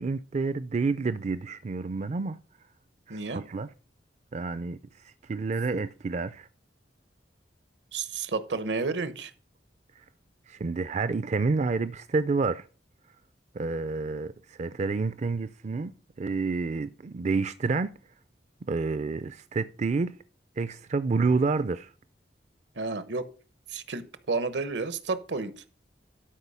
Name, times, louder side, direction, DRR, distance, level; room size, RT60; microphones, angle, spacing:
voice 1, 0.0-2.4 3.1-3.7 4.3-4.8 5.0-6.5 10.5-12.7 13.5-14.3 14.6-17.9 18.7-20.1 20.6-21.9, right 4 dB, 40° right, 0.4 m, -29 dB
voice 2, 3.1-3.4 7.9-9.3 22.8-23.3 23.7-25.6, right 4 dB, 80° right, 1.0 m, -31 dB
12.0 x 5.0 x 5.5 m
head